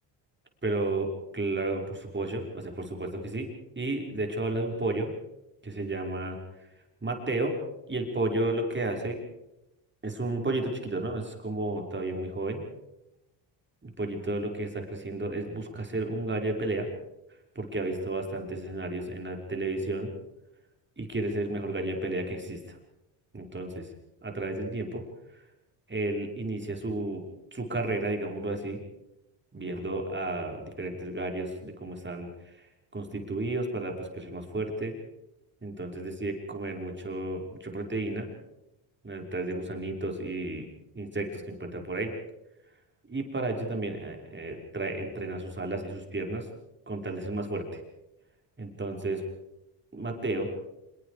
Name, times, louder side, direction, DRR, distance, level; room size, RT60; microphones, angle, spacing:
voice 1, 0.6-3.5 3.8-5.1 5.6-6.4 7.0-7.5 7.9-9.2 10.0-12.6 13.8-16.9 17.6-20.1 21.0-22.8 23.3-23.9 24.2-25.0 25.9-27.2 27.5-28.8 29.5-32.3 32.9-35.0 35.6-38.3 39.0-40.7 40.9-42.1 43.1-46.5 46.9-47.8 48.6-49.2 49.9-50.5, right 2 dB, 20° right, 2 dB, 5.7 m, -32 dB
26.5 x 22.5 x 5.2 m, 0.92 s
cardioid pair, 90°, 50 cm